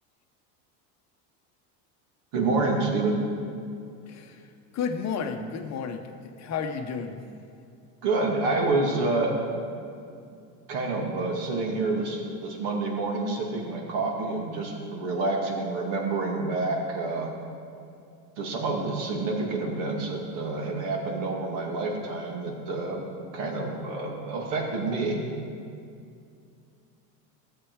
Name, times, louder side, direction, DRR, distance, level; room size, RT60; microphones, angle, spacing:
voice 1, 2.3-3.2 8.0-9.4 10.7-17.3 18.4-23.1 23.3-25.2, right 3 dB, 60° right, 0 dB, 2.4 m, -28 dB
voice 2, 4.1-7.2, left 6 dB, 35° left, 5 dB, 0.9 m, -32 dB
13.5 x 7.7 x 4.7 m, 2.4 s
supercardioid pair, 110°, 47 cm